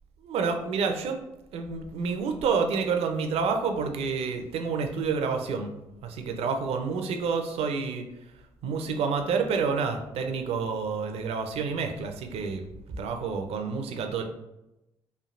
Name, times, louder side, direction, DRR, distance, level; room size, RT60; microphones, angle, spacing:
voice 1, 0.2-1.2 1.5-5.7 6.0-8.1 8.6-12.6 13.0-14.2, right 5 dB, 65° right, 5 dB, 0.5 m, -28 dB
3.2 x 2.3 x 2.4 m, 0.89 s
hypercardioid pair, 50°, 11 cm